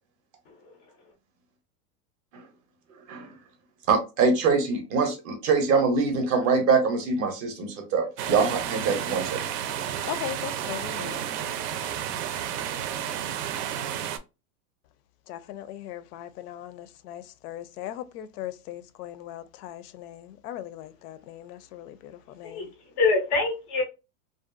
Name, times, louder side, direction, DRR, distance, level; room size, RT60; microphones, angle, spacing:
voice 1, 0.5-0.8 22.4-23.8, left 3 dB, 20° left, 0.3 m, -26 dB
voice 2, 2.9-3.3 3.9-9.4, right 4 dB, 30° right, 0.5 m, -24 dB
sound 1, 8.2-14.2, right 9 dB, 80° right, 0.6 m, -31 dB
voice 3, 10.0-11.3 15.3-22.7, left 12 dB, 75° left, 0.5 m, -39 dB
2.6 x 2.3 x 2.4 m
supercardioid pair, 145°, 46 cm